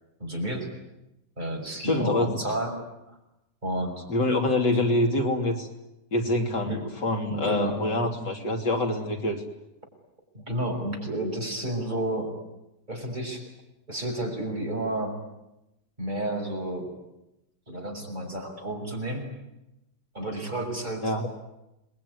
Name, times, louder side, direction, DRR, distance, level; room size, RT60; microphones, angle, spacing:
voice 1, 0.2-0.7 1.4-3.2 3.6-4.0 6.7-6.8 7.3-7.8 10.3-12.4 12.9-13.4 13.9-15.2 16.0-16.9 17.7-19.3 20.1-21.1, right 1 dB, 25° right, 1 dB, 6.2 m, -31 dB
voice 2, 1.8-2.5 4.1-5.7 6.1-9.4 21.0-21.3, left 2 dB, 80° left, 3 dB, 3.6 m, -25 dB
28.0 x 21.5 x 9.7 m, 0.93 s
omnidirectional pair, 1.8 m